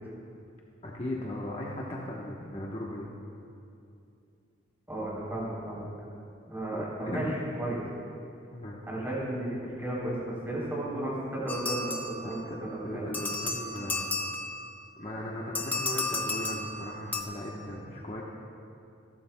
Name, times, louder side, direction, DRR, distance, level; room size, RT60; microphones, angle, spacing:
voice 1, 0.8-3.1 6.7-7.3 8.5-8.8 12.2-14.1 15.0-18.2, left 1 dB, 30° left, -4 dB, 1.1 m, -37 dB
voice 2, 4.9-5.9 6.5-7.8 8.9-12.0 12.2-12.4 12.7-13.0, right 1 dB, 10° right, -6 dB, 3.5 m, -34 dB
sound 1, 11.5-12.6 13.1-14.8 15.5-17.2, left 2 dB, 10° left, 0.6 m, -33 dB
27.5 x 11.5 x 2.3 m, 2.6 s
head